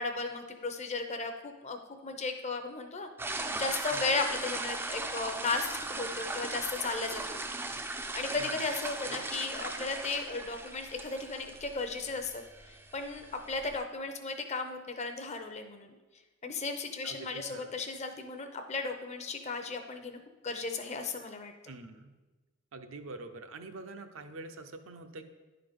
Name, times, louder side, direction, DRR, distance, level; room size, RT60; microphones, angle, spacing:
voice 1, 0.0-7.4 7.9-16.0 16.4-21.5, left 3 dB, 30° left, 6 dB, 0.6 m, -35 dB
sound 1, 3.2-13.8, right 2 dB, 10° right, 0.4 m, -38 dB
voice 2, 9.1-9.4 17.0-17.7 21.7-22.1 22.7-25.3, right 3 dB, 75° right, 7 dB, 0.6 m, -46 dB
10.0 x 3.9 x 5.1 m, 1.2 s
head